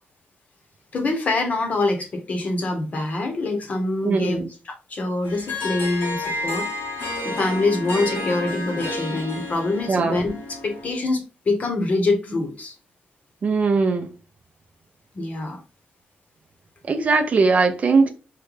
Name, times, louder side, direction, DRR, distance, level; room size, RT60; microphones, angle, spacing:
voice 1, 0.9-6.7 7.1-12.7 15.1-15.6, left 2 dB, 40° left, 0.9 m, -25 dB
voice 2, 4.0-4.5 9.9-10.2 13.4-14.1 16.9-18.1, right 4 dB, 40° right, 0.4 m, -20 dB
Harp, 5.2-11.0, left 2 dB, 85° left, 1.1 m, -31 dB
3.7 x 2.2 x 3.1 m
wide cardioid pair, 140°, 4 cm